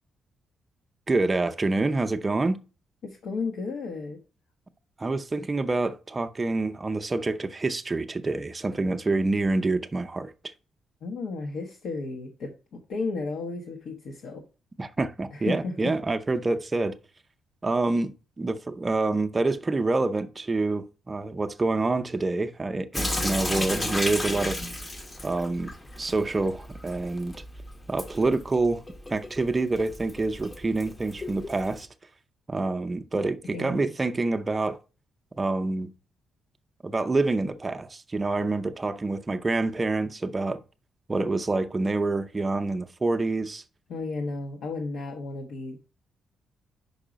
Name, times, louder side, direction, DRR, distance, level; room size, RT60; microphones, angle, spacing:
voice 1, 1.1-2.6 5.0-10.3 14.8-16.9 17.6-18.1 18.4-24.6 25.2-27.3 27.9-28.8 29.1-31.9 32.5-34.8 35.4-35.9 36.8-40.6 41.1-43.6, right 3 dB, 20° right, 0.5 m, -27 dB
voice 2, 3.0-4.2 11.0-14.4 15.3-15.9 33.5-33.9 43.9-45.8, left 3 dB, 75° left, 0.9 m, -33 dB
Sink (filling or washing) / Drip, 22.9-31.8, left 1 dB, 20° left, 0.7 m, -34 dB
5.4 x 4.8 x 5.0 m
cardioid pair, 130°, 0 cm